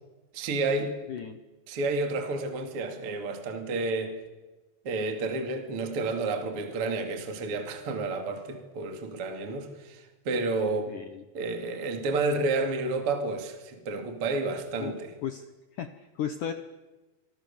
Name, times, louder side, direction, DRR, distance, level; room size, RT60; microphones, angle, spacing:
voice 1, 0.3-1.0 1.7-4.2 4.8-10.9 11.3-15.1, right 3 dB, 35° right, 2.7 m, -30 dB
voice 2, 1.1-1.4 10.9-11.2 14.8-14.9 15.2-15.5 15.7-16.5, left 9 dB, 80° left, 1.8 m, -35 dB
28.5 x 25.5 x 7.1 m
omnidirectional pair, 5.4 m